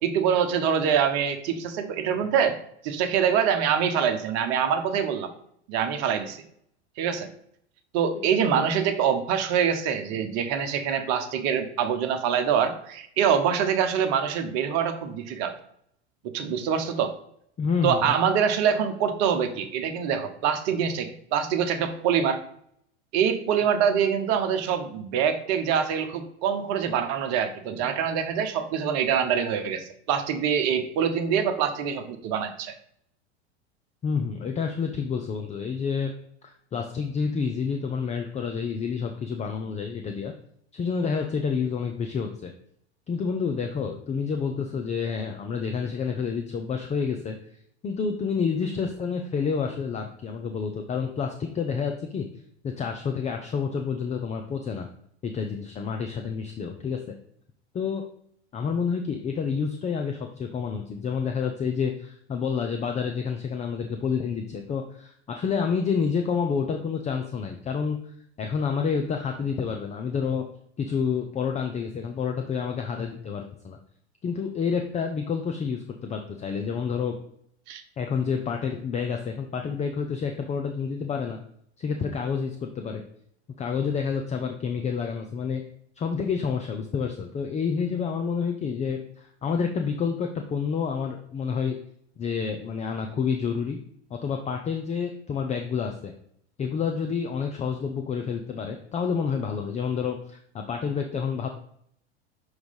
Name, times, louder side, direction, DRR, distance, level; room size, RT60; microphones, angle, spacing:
voice 1, 0.0-2.6 2.8-5.3 5.7-6.4 7.0-7.3 7.9-15.5 16.3-17.1 17.8-22.4 23.1-32.7 77.7-77.8, right 7 dB, 50° right, 8 dB, 1.0 m, -25 dB
voice 2, 17.6-18.1 34.0-36.1 36.4-40.3 40.7-42.5 43.1-47.4 47.8-52.3 52.6-54.9 55.2-57.0 57.7-58.0 58.5-68.0 68.4-70.5 70.8-73.8 74.2-77.2 78.0-81.4 81.8-83.0 83.6-85.6 86.0-91.8 92.2-93.8 94.2-96.1 96.6-101.5, left 6 dB, 20° left, 4 dB, 0.5 m, -29 dB
6.2 x 3.2 x 5.4 m, 0.67 s
hypercardioid pair, 90°, 34 cm